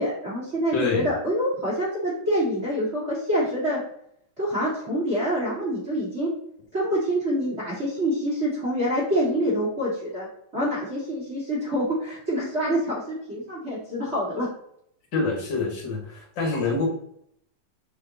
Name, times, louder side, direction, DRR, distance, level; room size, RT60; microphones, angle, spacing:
voice 1, 0.0-3.8 4.4-6.3 6.7-10.3 10.5-14.5, equal, 25° right, -7 dB, 1.5 m, -26 dB
voice 2, 0.7-1.1 15.1-16.9, left 3 dB, 40° left, -1 dB, 1.8 m, -26 dB
6.7 x 4.8 x 2.9 m, 0.71 s
omnidirectional pair, 4.1 m